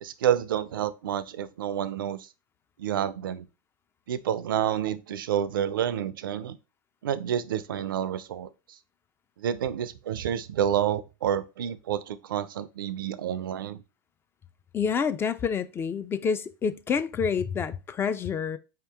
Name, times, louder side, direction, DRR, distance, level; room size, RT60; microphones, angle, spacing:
voice 1, 0.0-2.3 2.8-3.5 4.1-6.6 7.0-8.5 9.4-13.8, right 10 dB, 80° right, 0.4 m, -29 dB
voice 2, 14.7-18.6, left 6 dB, 20° left, 0.4 m, -28 dB
4.6 x 2.9 x 3.4 m
hypercardioid pair, 105°, 11 cm